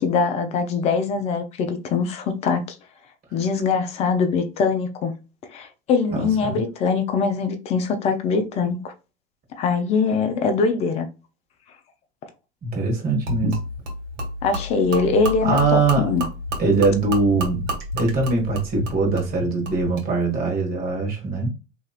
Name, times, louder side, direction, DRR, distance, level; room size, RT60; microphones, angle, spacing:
voice 1, 0.0-2.8 3.3-5.1 5.5-8.9 9.6-11.1 14.4-16.3, left 5 dB, 20° left, 0.3 m, -22 dB
voice 2, 6.1-6.5 12.6-13.6 15.4-16.1 16.6-17.7 17.9-21.5, right 3 dB, 25° right, 1.4 m, -22 dB
Gurgling / Liquid, 13.3-20.1, equal, 65° right, 1.5 m, -30 dB
2.9 x 2.8 x 2.3 m
hypercardioid pair, 105°, 39 cm